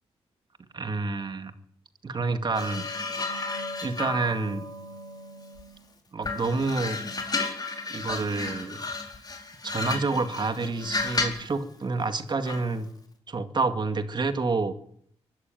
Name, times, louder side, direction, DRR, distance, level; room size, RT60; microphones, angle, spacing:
voice 1, 0.7-1.5 2.0-2.9 3.8-4.7 6.1-7.0 7.9-8.8 9.6-12.9 13.3-14.7, right 3 dB, 40° right, 8 dB, 2.1 m, -28 dB
sound 1, 2.5-5.8 6.2-11.5 12.5-12.7, left 3 dB, 35° left, 4.4 m, -33 dB
23.5 x 13.5 x 9.3 m, 0.65 s
wide cardioid pair, 110°, 11 cm